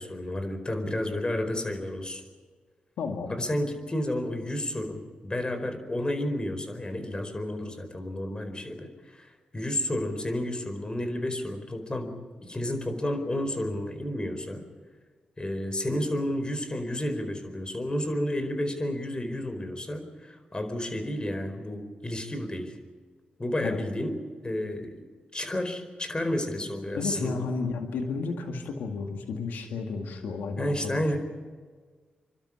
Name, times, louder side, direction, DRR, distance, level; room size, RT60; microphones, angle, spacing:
voice 1, 0.0-2.2 3.3-12.1 12.4-14.6 15.4-22.7 23.4-24.2 24.4-25.0 25.3-27.4 30.6-31.2, left 1 dB, 30° left, 8 dB, 4.6 m, -31 dB
voice 2, 3.0-3.4 23.6-23.8 26.9-31.0, left 4 dB, 90° left, 4 dB, 2.1 m, -32 dB
29.5 x 12.5 x 10.0 m, 1.5 s
cardioid pair, 50°, 3 cm